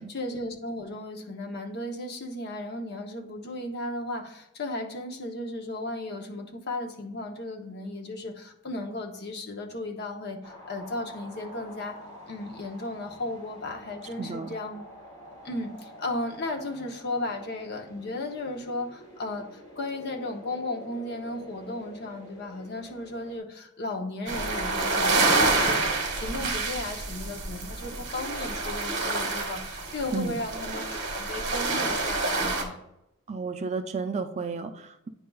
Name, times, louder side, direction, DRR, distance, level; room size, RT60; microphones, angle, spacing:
voice 1, 0.0-12.0 12.3-14.8 15.4-32.8, left 2 dB, 50° left, 3 dB, 0.8 m, -35 dB
sound 1, 10.4-23.4, left 1 dB, 20° left, 2.6 m, -47 dB
voice 2, 14.2-14.5 30.1-30.4 33.3-35.1, right 4 dB, 30° right, 8 dB, 0.4 m, -32 dB
sound 2, 24.3-32.6, right 3 dB, 60° right, 1.2 m, -27 dB
9.3 x 5.2 x 2.3 m, 0.87 s
head